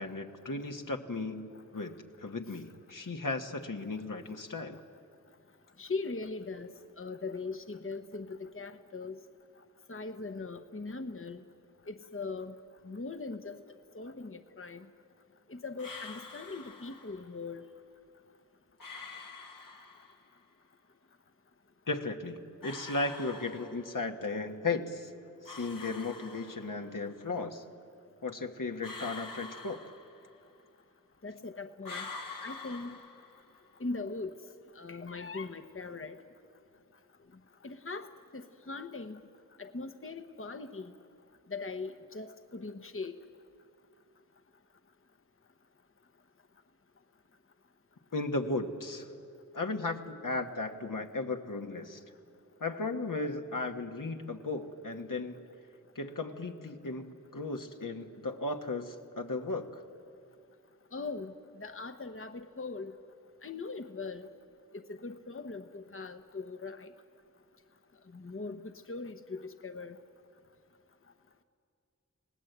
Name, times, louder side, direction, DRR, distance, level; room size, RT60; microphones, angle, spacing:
voice 1, 0.0-4.8 21.9-25.1 25.4-27.6 28.2-29.8 48.1-49.1 49.5-52.0 52.6-55.4 55.9-59.8, left 3 dB, 75° left, 4 dB, 1.5 m, -36 dB
voice 2, 5.8-6.7 7.0-9.2 9.9-11.4 11.9-12.5 12.8-13.6 13.9-14.9 15.5-17.6 31.2-32.1 32.4-33.0 33.8-34.3 34.8-36.2 37.6-39.2 39.6-40.9 41.5-43.1 60.9-61.3 61.6-62.9 63.4-64.3 64.7-66.9 68.1-70.0, left 3 dB, 40° left, 8 dB, 1.0 m, -40 dB
sound 1, 15.8-17.3 18.8-20.3 22.6-24.2 25.5-27.0 28.8-30.6 31.8-33.7, left 3 dB, 90° left, 1.7 m, -46 dB
29.5 x 18.5 x 8.1 m, 2.4 s
wide cardioid pair, 40°, 32 cm